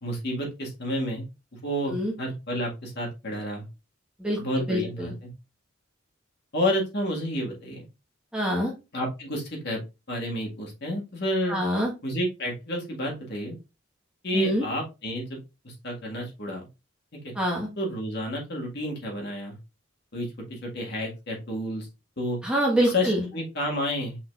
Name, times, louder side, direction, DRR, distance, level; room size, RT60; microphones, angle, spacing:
voice 1, 0.0-1.3 1.5-3.7 4.4-5.3 6.5-7.9 8.9-9.8 10.1-11.6 12.0-13.6 14.2-15.4 15.6-16.7 17.1-17.3 17.8-19.6 20.1-21.9 22.2-22.4 22.8-24.2, equal, 55° left, 0 dB, 1.7 m, -30 dB
voice 2, 4.7-5.1 8.3-8.7 11.5-11.9 14.3-14.6 17.3-17.7 22.4-23.2, equal, 5° right, -2 dB, 1.3 m, -25 dB
5.8 x 3.9 x 2.4 m, 0.26 s
head